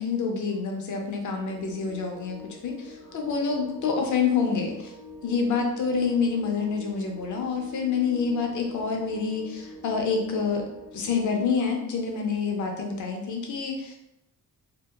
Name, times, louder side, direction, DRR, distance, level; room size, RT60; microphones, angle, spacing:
voice 1, 0.0-4.9 5.2-10.6 10.9-13.9, left 5 dB, 55° left, 2 dB, 0.6 m, -27 dB
sound 1, 1.4-11.4, left 2 dB, 90° right, 0.8 m, -45 dB
2.7 x 2.3 x 2.4 m, 0.85 s
wide cardioid pair, 145°, 36 cm